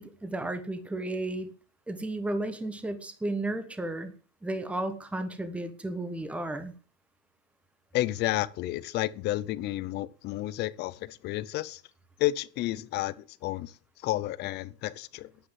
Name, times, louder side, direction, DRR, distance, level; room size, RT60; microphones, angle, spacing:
voice 1, 0.0-1.5 1.9-4.1 4.4-6.7, right 2 dB, 5° right, 1.2 m, -33 dB
voice 2, 7.9-11.8 12.2-13.8 14.0-15.3, left 16 dB, 30° left, 0.6 m, -31 dB
10.5 x 9.8 x 7.5 m
supercardioid pair, 165°, 34 cm